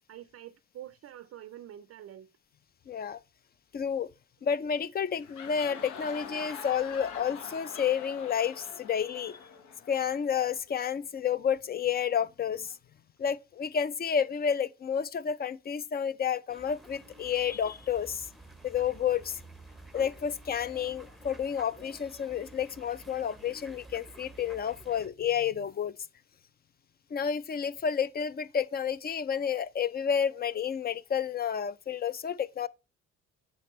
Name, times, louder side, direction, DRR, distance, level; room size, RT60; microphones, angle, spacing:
voice 1, 0.1-2.3, right 11 dB, 50° right, 0.4 m, -46 dB
voice 2, 2.9-3.2 3.7-4.1 4.4-9.4 9.9-12.7 13.2-18.3 18.6-19.4 19.9-25.9 27.1-32.7, left 8 dB, 35° left, 0.4 m, -30 dB
sound 1, 5.1-10.6, left 6 dB, 85° left, 0.9 m, -45 dB
sound 2, 16.5-25.1, right 2 dB, ahead, 0.7 m, -51 dB
7.7 x 5.0 x 3.0 m
cardioid pair, 90°, 30 cm